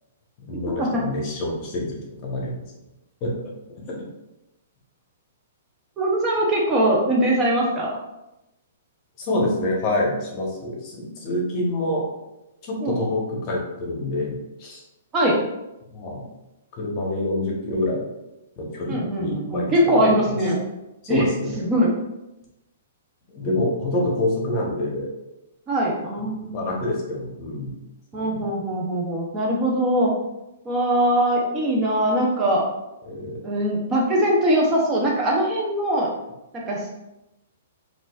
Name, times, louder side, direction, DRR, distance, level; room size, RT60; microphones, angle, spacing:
voice 1, 0.4-2.6 3.2-3.3 3.9-4.0 9.2-12.0 12.6-14.8 15.9-16.3 16.7-18.1 18.6-20.0 20.3-20.4 21.0-21.6 23.3-25.1 26.5-27.7 28.1-28.5 33.1-33.4, left 1 dB, 35° left, -2 dB, 1.0 m, -27 dB
voice 2, 6.0-7.9 12.8-13.0 15.1-15.4 18.9-20.6 21.1-21.3 21.6-21.9 25.7-26.6 28.1-30.1 30.6-32.6 33.4-36.1 36.5-36.9, right 1 dB, 25° right, -3 dB, 0.7 m, -21 dB
3.9 x 2.5 x 2.4 m, 0.93 s
hypercardioid pair, 135°, 0 cm